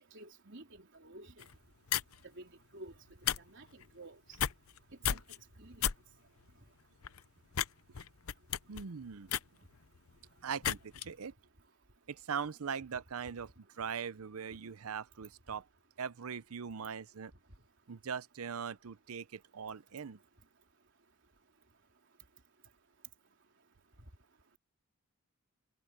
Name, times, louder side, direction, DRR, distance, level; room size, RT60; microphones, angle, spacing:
voice 1, 0.1-1.5 2.3-2.9 3.4-4.2 5.1-5.2 5.6-5.9 10.7-10.8, right 1 dB, 55° right, 4.1 m, -51 dB
sound 1, 1.4-1.5 1.9-2.2 3.1-3.4 3.6-3.9 4.3-4.8 5.0-5.4 5.8-5.9 6.4-6.5 7.0-7.2 7.5-7.7 7.9-10.1 10.6-11.0, left 10 dB, 75° left, 0.7 m, -33 dB
voice 2, 8.7-9.3 10.4-10.8 11.1-11.3 12.1-15.6 16.0-17.3 17.9-20.2, right 6 dB, 80° right, 0.6 m, -41 dB
head